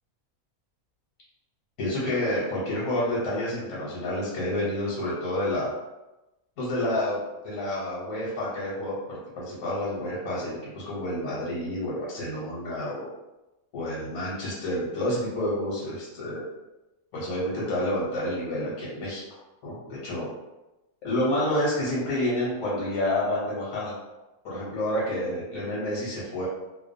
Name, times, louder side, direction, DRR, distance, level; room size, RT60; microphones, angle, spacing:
voice 1, 1.8-5.7 6.6-13.1 13.7-16.4 17.1-19.2 19.6-20.3 21.0-23.9 24.4-26.5, left 1 dB, 65° left, -7 dB, 1.2 m, -29 dB
2.6 x 2.2 x 2.5 m, 1.0 s
omnidirectional pair, 1.6 m